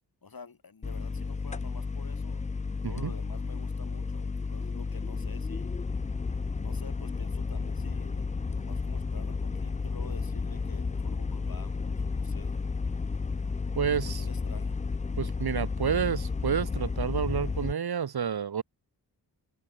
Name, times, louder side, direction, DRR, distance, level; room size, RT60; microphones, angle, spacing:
voice 1, 0.2-2.4 2.8-5.7 6.6-12.6 13.8-14.9, left 5 dB, 60° left, 7.8 m, -49 dB
sound 1, 0.8-17.7, left 4 dB, 20° left, 0.4 m, -32 dB
voice 2, 13.8-14.2 15.2-18.6, right 7 dB, 70° right, 1.3 m, -29 dB
wide cardioid pair, 115°, 39 cm